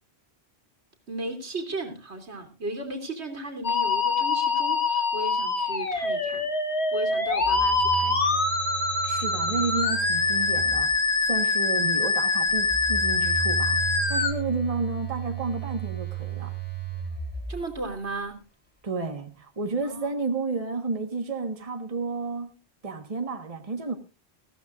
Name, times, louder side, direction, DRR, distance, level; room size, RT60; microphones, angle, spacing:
voice 1, 1.1-6.5 6.9-8.4 17.5-18.4 19.8-20.1, right 2 dB, 85° right, 3.3 m, -35 dB
Musical instrument, 3.6-14.3, left 3 dB, 75° left, 2.2 m, -24 dB
Telephone, 7.3-11.3 12.4-18.2, right 7 dB, 10° left, 3.2 m, -35 dB
voice 2, 9.0-13.8 14.1-16.6 18.8-22.5 22.8-24.0, right 3 dB, 35° right, 1.4 m, -31 dB
20.0 x 15.0 x 2.4 m
omnidirectional pair, 1.1 m